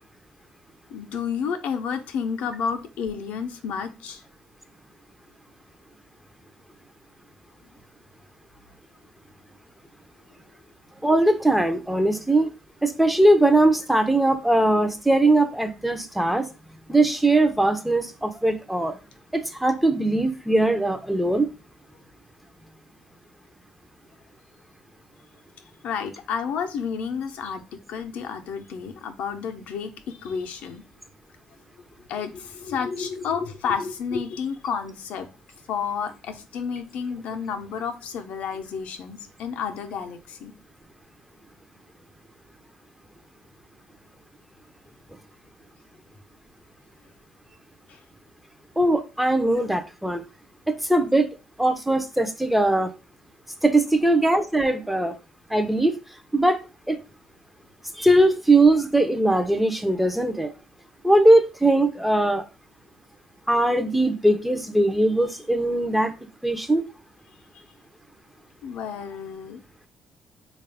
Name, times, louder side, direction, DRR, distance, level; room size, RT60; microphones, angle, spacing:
voice 1, 0.9-4.2 25.8-30.8 32.1-35.3 35.7-40.5 47.9-48.0 68.6-69.6, left 6 dB, 75° left, 0.6 m, -31 dB
voice 2, 11.0-12.6 12.8-16.5 16.9-19.0 19.3-21.5 48.8-50.2 50.7-51.3 51.6-52.9 53.6-55.1 55.5-56.0 56.3-56.6 56.9-57.0 57.9-60.5 61.0-62.4 63.5-66.1 66.4-66.9, right 1 dB, 5° right, 0.5 m, -20 dB
3.6 x 2.3 x 3.4 m
cardioid pair, 105°, 3 cm